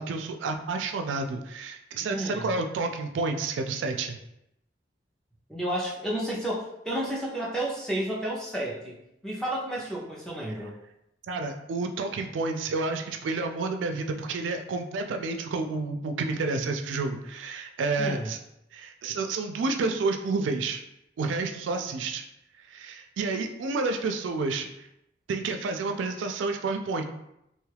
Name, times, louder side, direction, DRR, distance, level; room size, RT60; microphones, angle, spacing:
voice 1, 0.0-4.2 11.3-18.4 18.7-20.8 21.2-22.2 22.7-24.7 25.3-27.0, right 3 dB, 90° right, 5 dB, 0.3 m, -30 dB
voice 2, 2.1-2.5 5.5-10.8 18.0-18.3, right 1 dB, 5° left, -5 dB, 0.5 m, -31 dB
3.0 x 2.3 x 3.3 m, 0.83 s
head